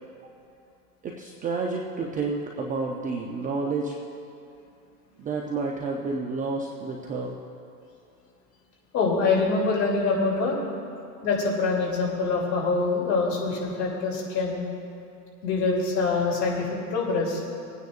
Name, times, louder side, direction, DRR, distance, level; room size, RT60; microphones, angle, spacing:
voice 1, 1.0-4.0 5.2-7.3, right 4 dB, 15° right, 0 dB, 0.6 m, -30 dB
voice 2, 8.9-10.6 11.2-14.6 15.4-17.4, left 4 dB, 35° left, -3 dB, 3.0 m, -25 dB
24.5 x 9.4 x 2.5 m, 2.7 s
supercardioid pair, 135°, 47 cm